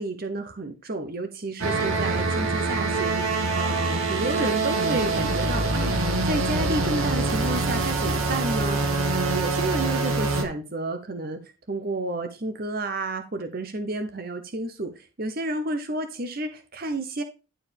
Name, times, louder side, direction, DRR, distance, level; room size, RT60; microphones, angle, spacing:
voice 1, 0.0-11.4 11.7-17.2, right 2 dB, 45° right, 0.8 m, -31 dB
sound 1, 1.6-10.4, right 3 dB, 80° right, 1.6 m, -25 dB
11.0 x 4.7 x 3.4 m
head